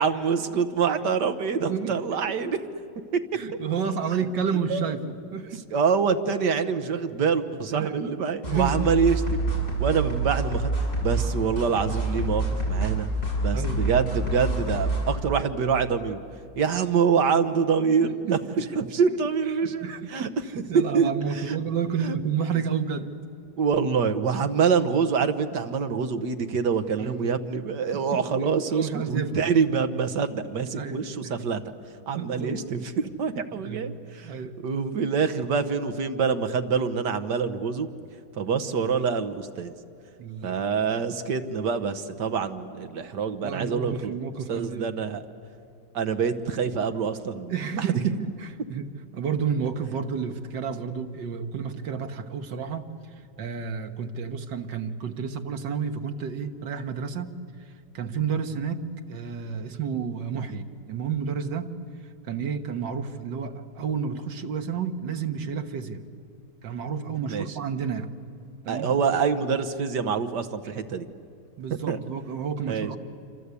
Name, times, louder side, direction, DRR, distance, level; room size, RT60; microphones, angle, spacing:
voice 1, 0.0-2.6 3.1-3.2 4.7-4.9 5.7-9.4 9.8-10.7 11.0-13.1 13.4-16.2 16.6-18.4 18.8-20.3 20.7-21.6 22.0-22.2 23.6-31.6 32.1-37.9 38.4-39.7 40.4-44.1 44.5-45.2 45.9-48.0 67.3-67.5 68.7-71.1 71.9-72.0 72.7-72.9, right 6 dB, 75° right, 10 dB, 1.8 m, -25 dB
voice 2, 1.7-2.5 3.3-5.6 7.7-8.9 13.5-13.9 18.0-18.7 19.1-19.2 19.6-23.1 27.0-27.3 27.9-28.2 28.7-29.5 30.7-31.4 32.1-32.6 33.5-33.9 34.2-34.6 40.2-40.6 43.4-44.9 47.5-52.9 53.4-57.4 57.9-61.8 62.2-66.1 66.6-68.1 68.6-68.9 71.6-73.0, right 6 dB, 90° right, 6 dB, 2.0 m, -31 dB
sound 1, 8.4-15.1, right 2 dB, 35° left, 7.0 m, -27 dB
28.0 x 25.5 x 8.4 m, 2.5 s
omnidirectional pair, 1.9 m